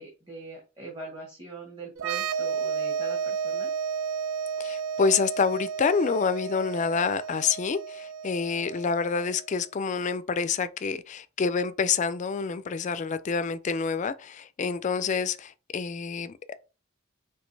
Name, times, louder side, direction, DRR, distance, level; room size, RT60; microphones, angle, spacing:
voice 1, 0.0-3.7, right 3 dB, 20° right, 1.2 m, -41 dB
sound 1, 2.0-9.5, right 6 dB, 85° right, 0.5 m, -32 dB
voice 2, 4.6-16.5, left 5 dB, 35° left, 0.3 m, -27 dB
5.1 x 2.9 x 3.2 m
head